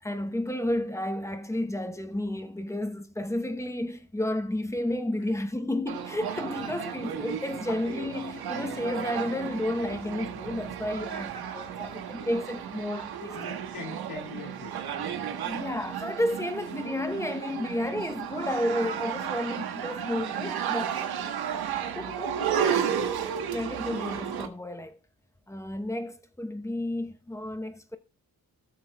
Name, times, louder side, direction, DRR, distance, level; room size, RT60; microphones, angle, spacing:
voice 1, 0.0-13.6 15.5-21.1 22.0-22.3 23.5-25.0 25.5-28.0, left 1 dB, 10° left, 0.9 m, -32 dB
sound 1, 5.9-24.5, right 8 dB, 90° right, 1.4 m, -33 dB
voice 2, 13.3-15.4 22.2-22.7, left 5 dB, 85° left, 2.7 m, -43 dB
18.0 x 6.9 x 2.3 m
cardioid pair, 105°, 37 cm